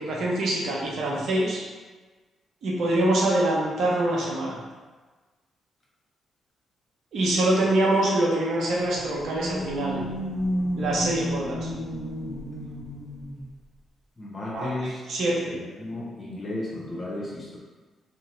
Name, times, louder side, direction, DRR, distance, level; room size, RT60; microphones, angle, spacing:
voice 1, 0.0-1.6 2.6-4.6 7.1-10.0 10.8-11.7 14.5-15.5, right 1 dB, 70° right, -4 dB, 0.6 m, -25 dB
sound 1, 8.8-13.5, equal, 20° right, 1.4 m, -32 dB
voice 2, 14.2-15.0 15.3-17.6, left 1 dB, 35° left, -5 dB, 0.9 m, -34 dB
2.7 x 2.1 x 3.1 m, 1.3 s
supercardioid pair, 55°, 0 cm